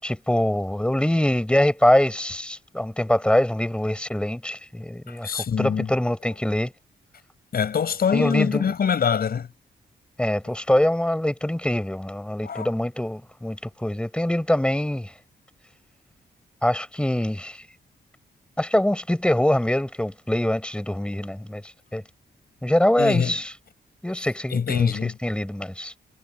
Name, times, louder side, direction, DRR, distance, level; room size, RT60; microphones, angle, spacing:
voice 1, 0.0-6.7 8.1-8.6 10.2-15.1 16.6-17.6 18.6-21.6 21.9-22.0 22.6-23.5 24.0-25.9, left 1 dB, 5° left, 5.8 m, -24 dB
voice 2, 5.1-5.9 6.2-6.3 7.5-9.5 12.4-12.7 23.0-23.4 24.5-25.2, left 7 dB, 60° left, 7.2 m, -24 dB
wide cardioid pair, 165°, 18 cm